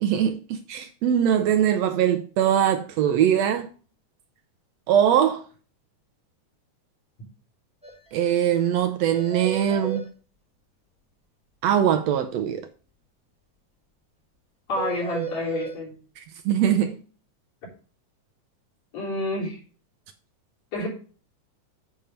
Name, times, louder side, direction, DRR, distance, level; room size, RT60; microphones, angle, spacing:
voice 1, 0.0-3.7 4.9-5.4 8.1-10.1 11.6-12.7 16.2-17.0, right 9 dB, 75° right, 1.7 m, -22 dB
sound 1, 7.8-7.9 8.2-8.3 8.6-8.7 9.1-10.0 14.8-15.7, right 7 dB, 5° right, 0.7 m, -33 dB
voice 2, 14.7-15.9 18.9-19.6 20.7-20.9, left 2 dB, 65° left, 4.7 m, -29 dB
8.8 x 4.4 x 5.1 m
omnidirectional pair, 3.4 m